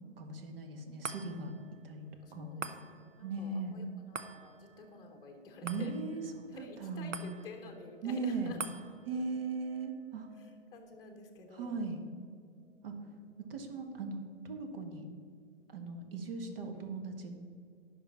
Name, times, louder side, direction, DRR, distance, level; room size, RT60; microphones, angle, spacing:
voice 1, 0.0-1.5 1.8-2.1 2.3-2.5 3.2-3.7 5.6-7.2 8.0-8.6 9.0-10.3 11.5-12.0 12.8-12.9 13.5-15.0 15.7-17.3, right 4 dB, 50° right, 5 dB, 1.5 m, -38 dB
sound 1, 1.0-13.6 14.1-14.2, right 4 dB, 85° right, 0.9 m, -49 dB
voice 2, 2.2-5.9 6.5-8.6 9.1-9.2 10.4-11.8 12.6-13.1, left 3 dB, 10° left, 2 dB, 1.0 m, -51 dB
11.0 x 6.1 x 5.8 m, 2.3 s
figure-of-eight pair, 130°, 37 cm